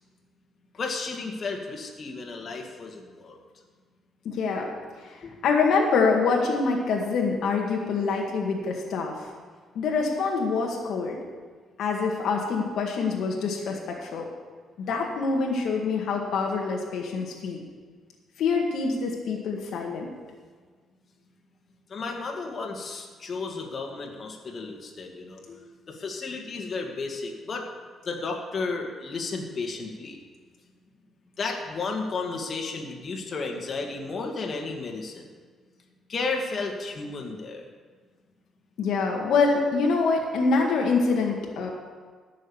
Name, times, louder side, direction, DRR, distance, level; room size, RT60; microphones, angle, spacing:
voice 1, 0.7-3.4 5.2-5.4 21.9-25.6 25.9-27.7 28.1-30.2 31.4-35.3 36.1-37.6, left 4 dB, 45° left, 1 dB, 2.2 m, -33 dB
voice 2, 4.3-4.7 5.0-9.2 9.8-11.2 11.8-14.3 14.8-17.6 18.4-20.1 38.8-41.7, left 4 dB, 75° left, 0 dB, 1.8 m, -25 dB
15.5 x 6.4 x 7.2 m, 1.5 s
cardioid pair, 90°, 0 cm